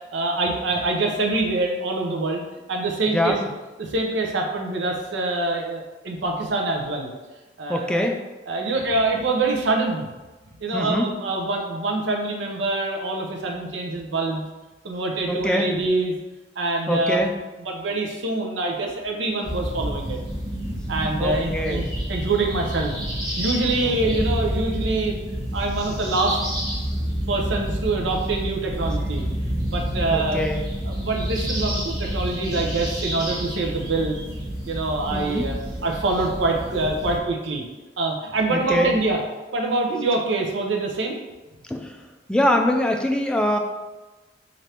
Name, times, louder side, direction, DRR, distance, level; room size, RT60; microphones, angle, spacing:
voice 1, 0.1-2.4 2.7-3.4 3.8-7.1 7.6-8.1 8.5-10.1 10.6-14.5 14.8-16.1 16.6-17.2 17.6-20.2 20.9-22.9 23.4-25.1 25.5-26.4 27.3-29.3 29.7-30.4 30.8-34.2 34.7-37.6 38.0-39.2 39.5-41.2, right 2 dB, 75° right, 1 dB, 0.6 m, -25 dB
voice 2, 7.7-8.1 10.7-11.1 15.3-15.7 16.9-17.3 21.2-21.9 23.8-24.0 30.1-30.7 35.1-35.5 38.5-38.9 41.7-42.0 42.3-43.6, left 1 dB, 5° left, 3 dB, 0.3 m, -23 dB
sound 1, 19.4-37.2, equal, 20° right, 1.1 m, -29 dB
3.3 x 2.6 x 4.2 m, 1.1 s
head